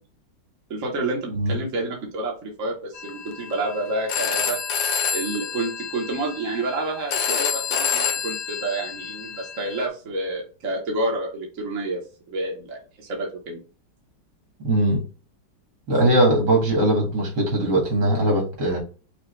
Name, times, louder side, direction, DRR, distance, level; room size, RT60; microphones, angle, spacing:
voice 1, 0.7-4.6 5.1-12.0 12.3-13.6, right 2 dB, 50° right, -1 dB, 1.4 m, -29 dB
Telephone, 3.0-9.9, left 7 dB, 70° left, 1.2 m, -28 dB
voice 2, 14.6-15.0 15.9-18.8, right 1 dB, 70° right, 0 dB, 2.5 m, -20 dB
5.9 x 2.4 x 3.2 m, 0.35 s
omnidirectional pair, 1.9 m